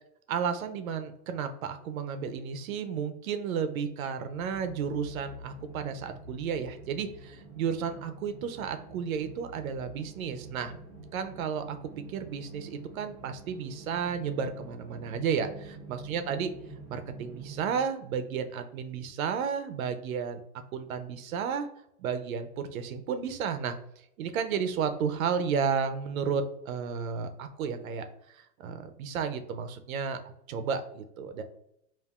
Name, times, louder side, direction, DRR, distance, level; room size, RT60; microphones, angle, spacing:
voice 1, 0.3-10.7 11.1-11.8 12.1-16.5 16.9-20.4 20.7-21.7 22.0-23.7 24.2-30.2 30.5-31.4, right 6 dB, 65° right, 8 dB, 0.6 m, -32 dB
sound 1, 4.3-17.8, right 3 dB, 10° right, 0.7 m, -47 dB
5.3 x 2.5 x 2.4 m, 0.76 s
supercardioid pair, 180°, 45 cm